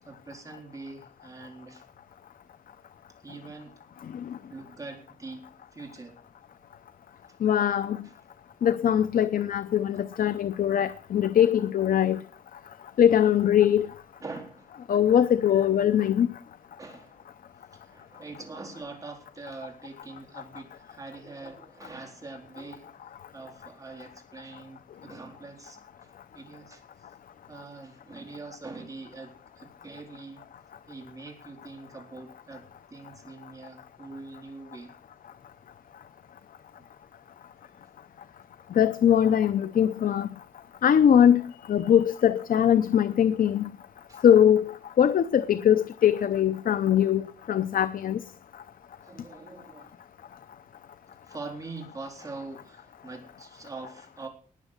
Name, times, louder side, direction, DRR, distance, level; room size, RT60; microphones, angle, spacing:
voice 1, 0.0-1.9 3.2-3.8 4.5-6.2 7.2-7.4 8.0-8.1 14.2-14.7 16.8-17.3 17.7-22.9 23.3-27.1 27.5-30.5 30.9-35.0 41.1-41.5 44.1-44.2 49.0-50.0 51.1-54.3, right 3 dB, 25° right, 3.9 m, -44 dB
voice 2, 7.4-8.0 8.6-12.2 13.0-13.9 14.9-16.3 38.7-40.3 40.8-43.7 44.2-48.2, left 9 dB, 80° left, 0.6 m, -22 dB
19.0 x 7.2 x 6.6 m
wide cardioid pair, 135°, 14 cm